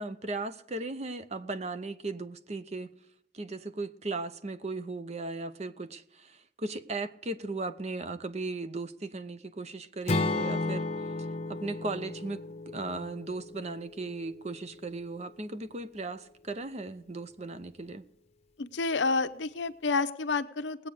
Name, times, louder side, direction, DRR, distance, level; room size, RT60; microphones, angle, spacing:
voice 1, 0.0-2.9 3.3-10.8 11.5-18.0, right 3 dB, 35° right, 0.7 m, -37 dB
Acoustic guitar / Strum, 10.1-14.2, left 2 dB, 35° left, 0.8 m, -33 dB
voice 2, 18.6-20.9, left 4 dB, 90° left, 0.8 m, -29 dB
19.5 x 8.4 x 5.1 m
head